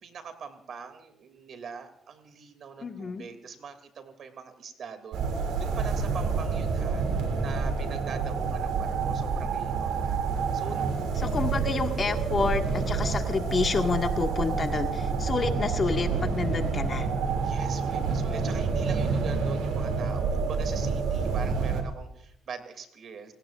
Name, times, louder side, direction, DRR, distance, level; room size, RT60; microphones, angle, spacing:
voice 1, 0.0-10.2 10.5-11.4 17.4-23.3, right 6 dB, 60° right, 8 dB, 2.7 m, -43 dB
voice 2, 2.8-3.2 11.2-17.1, left 4 dB, 40° left, 4 dB, 1.8 m, -29 dB
sound 1, 5.1-21.8, right 5 dB, 90° right, 2.7 m, -28 dB
28.0 x 17.5 x 2.5 m, 0.78 s
cardioid pair, 90°, 0 cm